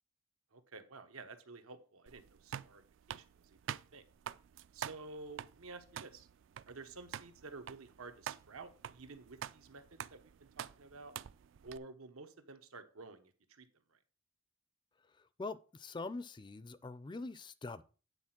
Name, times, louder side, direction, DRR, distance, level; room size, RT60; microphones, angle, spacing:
voice 1, 0.5-3.6 3.9-4.0 4.7-6.3 6.7-11.1 11.6-14.0, right 3 dB, 90° right, 1.1 m, -52 dB
sound 1, 2.1-11.8, right 9 dB, 60° right, 0.3 m, -47 dB
voice 2, 15.0-17.8, left 3 dB, 20° left, 0.4 m, -44 dB
9.8 x 4.2 x 5.9 m
head